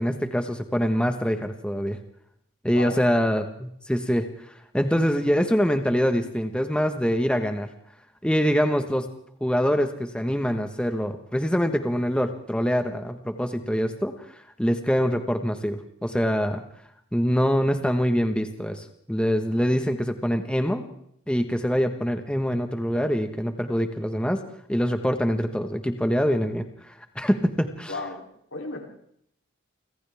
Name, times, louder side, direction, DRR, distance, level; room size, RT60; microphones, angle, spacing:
voice 1, 0.0-2.0 2.6-4.3 4.7-7.7 8.2-9.1 9.4-14.1 14.6-16.6 17.1-20.8 21.3-24.4 24.7-26.6 27.1-27.9, equal, 5° left, 6 dB, 1.3 m, -24 dB
voice 2, 27.9-28.2 28.5-28.8, left 3 dB, 70° left, 1 dB, 3.5 m, -33 dB
29.5 x 25.5 x 3.6 m, 0.70 s
head